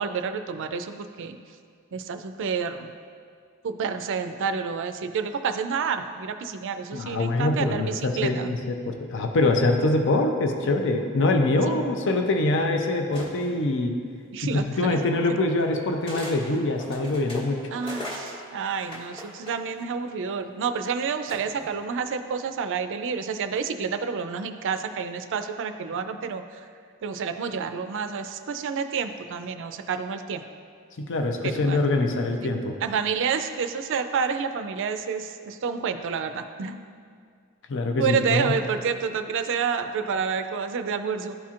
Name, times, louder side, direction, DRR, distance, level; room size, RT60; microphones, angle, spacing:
voice 1, 0.0-1.4 1.9-2.9 3.6-8.5 11.7-11.8 14.3-15.0 17.7-26.6 27.0-30.4 31.4-31.9 32.4-32.5 32.8-36.8 38.0-41.4, right 6 dB, 60° right, 8 dB, 0.4 m, -29 dB
voice 2, 6.9-13.9 14.5-17.6 31.0-32.8 37.7-38.5, left 2 dB, 60° left, 4 dB, 0.6 m, -24 dB
sound 1, 13.1-13.6 14.8-14.9 16.0-16.4 16.8-19.9 21.3-21.7, equal, 25° left, 1.2 m, -38 dB
12.0 x 4.3 x 2.4 m, 2.2 s
head